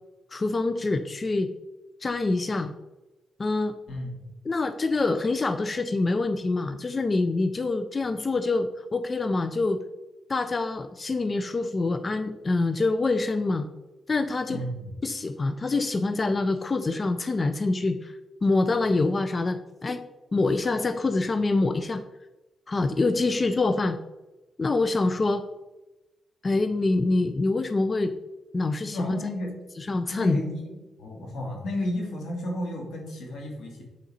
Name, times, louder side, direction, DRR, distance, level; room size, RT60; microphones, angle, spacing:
voice 1, 0.3-1.5 2.0-2.7 3.4-3.7 4.5-9.8 10.3-13.7 14.1-14.6 15.0-20.0 20.3-22.0 22.7-24.0 24.6-25.4 26.4-28.1 28.5-29.2 29.8-30.4, left 3 dB, 25° left, 9 dB, 0.3 m, -25 dB
voice 2, 14.5-15.0 28.9-29.6 30.1-30.7 31.0-33.8, left 1 dB, 85° left, 0 dB, 2.0 m, -32 dB
8.2 x 3.9 x 4.2 m, 1.1 s
wide cardioid pair, 140°, 0 cm